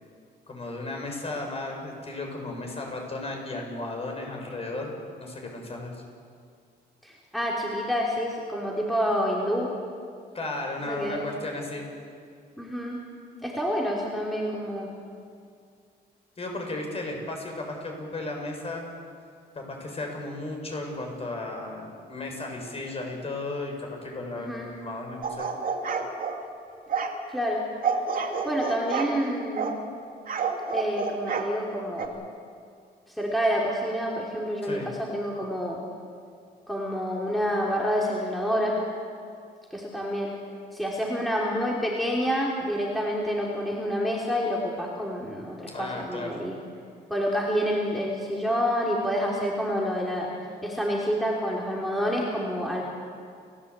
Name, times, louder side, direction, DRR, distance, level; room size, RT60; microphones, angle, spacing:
voice 1, 0.5-6.0 10.3-11.8 16.4-18.9 19.5-25.5 34.6-34.9 45.7-46.4, left 2 dB, 35° left, 1 dB, 6.4 m, -35 dB
voice 2, 7.0-9.7 10.8-11.2 12.6-13.0 13.4-14.9 24.4-24.7 27.3-27.6 28.2-29.7 30.7-32.1 33.1-35.8 36.7-38.8 39.7-40.3 40.7-46.6 47.1-50.3 50.6-52.8, equal, ahead, -4 dB, 3.6 m, -28 dB
sound 1, 25.2-26.4 26.9-27.1 27.8-29.1 29.6-29.8 30.3-31.5 32.0-32.1, right 5 dB, 55° right, 2.5 m, -29 dB
29.5 x 15.0 x 8.4 m, 2.2 s
cardioid pair, 115°, 18 cm